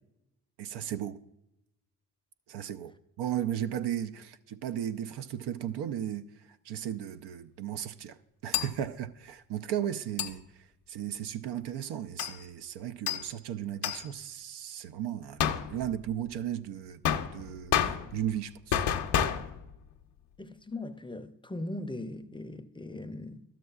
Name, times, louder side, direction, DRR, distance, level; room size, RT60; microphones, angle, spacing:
voice 1, 0.6-1.2 2.5-8.2 8.4-17.0 17.3-18.8, right 10 dB, 65° right, 0.5 m, -36 dB
sound 1, 8.5-8.8 10.2-10.3 12.2-12.4 13.1-13.4 13.8-14.1 15.4-16.0 17.0-18.4 18.7-19.7, left 9 dB, 70° left, 0.7 m, -30 dB
voice 2, 20.4-23.4, left 2 dB, 10° left, 0.6 m, -39 dB
12.0 x 7.5 x 2.3 m
hypercardioid pair, 40°, 43 cm